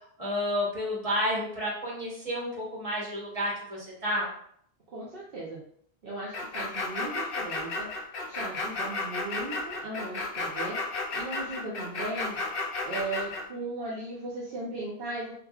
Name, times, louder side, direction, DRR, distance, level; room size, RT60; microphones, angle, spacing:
voice 1, 0.2-4.3, equal, 35° right, -5 dB, 1.3 m, -30 dB
voice 2, 4.9-5.6 6.0-12.4 12.8-15.3, right 2 dB, 65° right, -6 dB, 0.9 m, -37 dB
sound 1, 6.3-13.4, left 3 dB, 60° left, 0.8 m, -33 dB
4.7 x 2.5 x 2.4 m, 0.65 s
omnidirectional pair, 1.1 m